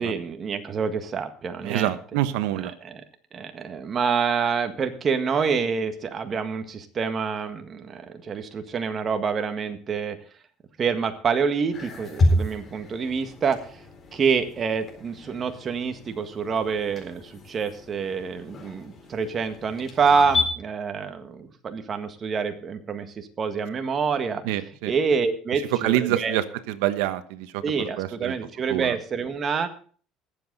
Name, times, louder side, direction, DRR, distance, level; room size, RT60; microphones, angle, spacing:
voice 1, 0.0-2.0 2.8-3.0 3.3-10.2 10.8-13.8 14.1-24.4 24.9-26.4 27.6-29.7, right 5 dB, 35° right, 7 dB, 1.7 m, -27 dB
voice 2, 1.6-2.7 24.4-24.9 25.7-28.4 28.7-29.0, right 13 dB, 85° right, 12 dB, 1.1 m, -26 dB
sound 1, 11.7-20.5, left 1 dB, 35° left, 4.0 m, -30 dB
20.5 x 7.8 x 4.0 m, 0.43 s
cardioid pair, 120°, 0 cm